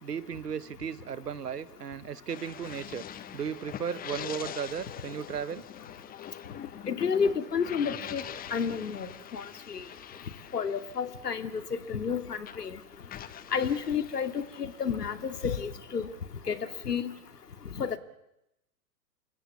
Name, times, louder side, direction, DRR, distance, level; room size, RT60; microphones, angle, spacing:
voice 1, 0.0-3.0 3.3-5.6, right 7 dB, 75° right, 16 dB, 1.5 m, -35 dB
sound 1, 2.3-12.1 12.4-16.3, left 10 dB, 20° left, 1.2 m, -44 dB
voice 2, 6.9-8.2 8.5-9.8 10.5-12.8 13.5-16.1 16.5-16.6 16.9-17.1 17.8-18.0, left 6 dB, 75° left, 10 dB, 2.6 m, -31 dB
28.5 x 23.5 x 8.5 m, 0.87 s
figure-of-eight pair, 105°, 47 cm